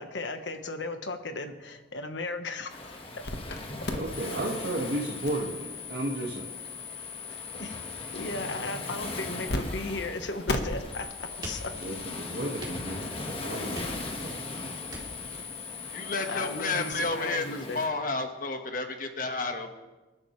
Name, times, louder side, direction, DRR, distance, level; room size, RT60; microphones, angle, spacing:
voice 1, 0.0-3.0 7.3-7.8 8.1-11.7 16.3-17.8, left 2 dB, 85° left, 7 dB, 1.3 m, -36 dB
Waves surf, 2.7-17.9, left 2 dB, 30° left, 1.6 m, -40 dB
sound 1, 3.2-3.6 3.8-9.6 9.8-10.0 10.5-17.1, left 4 dB, 65° left, 1.3 m, -38 dB
voice 2, 3.9-6.6 11.7-14.6, right 1 dB, 60° right, -3 dB, 1.8 m, -34 dB
sound 2, 11.4-12.2 12.6-13.2 13.7-14.4 14.9-15.4, right 1 dB, 25° right, 3.3 m, -42 dB
voice 3, 15.9-19.7, left 3 dB, 50° left, 5 dB, 1.5 m, -31 dB
28.0 x 11.5 x 3.3 m, 1.2 s
head